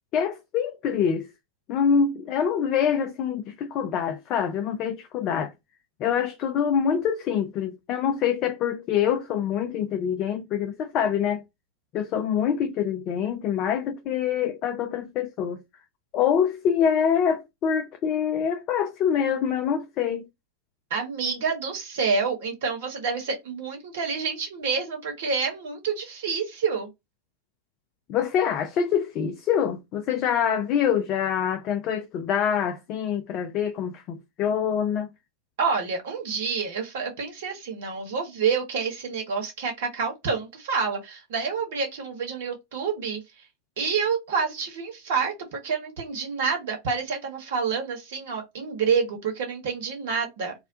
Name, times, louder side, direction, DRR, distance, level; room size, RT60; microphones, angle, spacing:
voice 1, 0.1-1.3 1.7-5.5 6.0-11.4 11.9-15.6 16.1-20.3 28.1-35.1, left 8 dB, 35° left, 0.4 m, -25 dB
voice 2, 20.9-26.9 35.6-43.2 43.8-50.5, right 5 dB, 55° right, 1.0 m, -28 dB
2.2 x 2.1 x 2.6 m
figure-of-eight pair, 90°, 0 cm